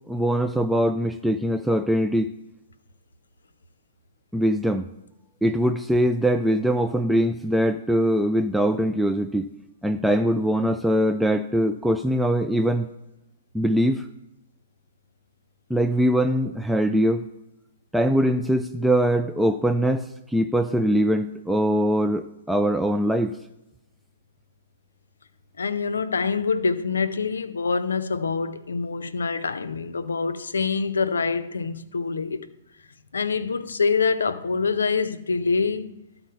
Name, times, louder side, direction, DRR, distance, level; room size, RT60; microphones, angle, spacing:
voice 1, 0.1-2.3 4.3-4.9 5.4-9.5 9.8-12.9 13.5-14.1 15.7-17.2 17.9-23.3, equal, 5° right, 0.3 m, -22 dB
voice 2, 25.6-32.5 33.1-35.9, left 5 dB, 80° left, 0.5 m, -25 dB
12.0 x 4.2 x 5.6 m
figure-of-eight pair, 115°, 0 cm